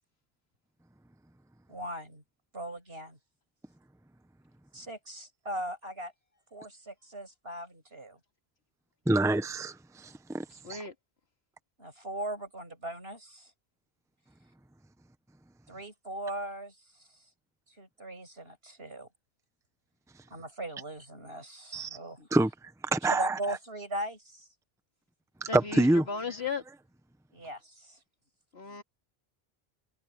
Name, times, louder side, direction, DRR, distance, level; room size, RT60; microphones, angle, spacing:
voice 1, 1.7-2.2 2.5-3.2 4.7-6.1 6.5-8.2 11.8-13.5 15.7-17.1 17.7-19.1 20.3-22.3 23.2-24.5 27.3-28.0 28.6-28.8, right 1 dB, 75° right, 6.8 m, -39 dB
voice 2, 9.1-10.8 21.7-22.0 22.3-23.6 25.5-26.1, right 2 dB, 5° right, 0.8 m, -27 dB
voice 3, 25.5-26.6 28.5-28.8, left 5 dB, 90° left, 2.7 m, -35 dB
omnidirectional pair, 1.0 m